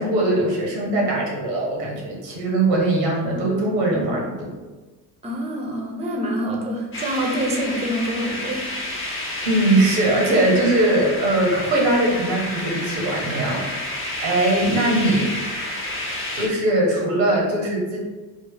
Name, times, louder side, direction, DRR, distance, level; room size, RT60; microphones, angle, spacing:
voice 1, 0.0-4.5 9.4-13.7 14.2-15.3 16.0-18.0, right 1 dB, 75° right, -2 dB, 1.1 m, -21 dB
voice 2, 5.2-8.7, equal, 15° right, 0 dB, 0.7 m, -26 dB
sound 1, 6.9-16.5, left 1 dB, 25° left, 0.8 m, -30 dB
3.2 x 2.0 x 3.9 m, 1.2 s
figure-of-eight pair, 50°, 49 cm